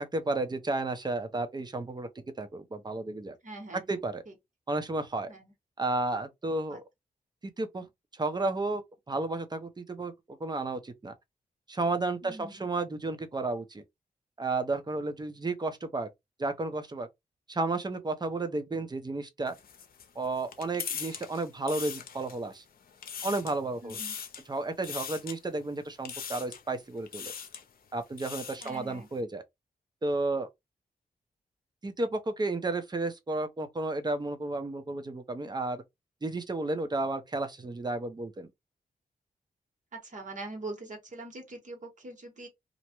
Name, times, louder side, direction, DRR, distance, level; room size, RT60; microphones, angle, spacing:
voice 1, 0.0-2.1 2.4-3.4 3.7-4.2 4.7-5.3 5.8-6.8 7.6-7.9 8.1-11.1 11.7-13.8 14.4-16.1 16.4-17.1 17.5-19.6 20.2-22.6 23.2-24.0 24.5-27.3 27.9-29.4 30.0-30.5 31.8-35.8 36.2-38.5, right 2 dB, 25° right, 0.7 m, -32 dB
voice 2, 3.4-3.9 5.3-5.5 6.7-6.8 12.2-12.7 23.8-24.1 28.6-29.1 39.9-42.5, right 2 dB, 55° right, 1.3 m, -43 dB
sound 1, 19.5-22.5 22.9-23.6 23.9-24.5 24.8-25.4 26.0-26.7 27.1-27.6 28.0-28.8, left 7 dB, 70° left, 0.6 m, -40 dB
2.5 x 2.1 x 2.9 m
cardioid pair, 80°, 15 cm